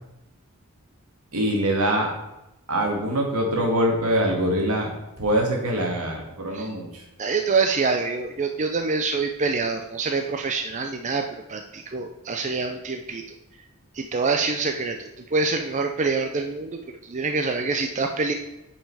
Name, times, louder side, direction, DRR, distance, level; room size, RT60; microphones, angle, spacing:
voice 1, 1.3-2.1 2.7-4.9 5.2-7.0, right 1 dB, 75° right, 0 dB, 2.3 m, -23 dB
voice 2, 7.2-13.2 13.9-18.3, right 4 dB, 35° right, 5 dB, 0.5 m, -26 dB
9.1 x 5.4 x 4.9 m, 0.92 s
head